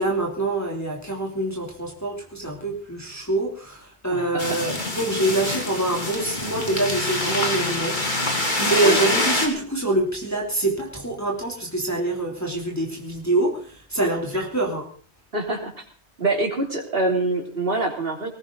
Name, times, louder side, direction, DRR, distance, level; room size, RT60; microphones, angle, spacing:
voice 1, 0.0-13.6 13.9-14.9, right 2 dB, 15° left, -2 dB, 3.1 m, -25 dB
voice 2, 4.1-4.6 8.8-9.0 15.3-15.7 16.2-18.3, right 2 dB, 55° right, 2 dB, 3.6 m, -25 dB
sound 1, 4.4-9.5, left 1 dB, 45° left, 3.0 m, -25 dB
20.0 x 16.5 x 4.0 m, 0.42 s
omnidirectional pair, 1.1 m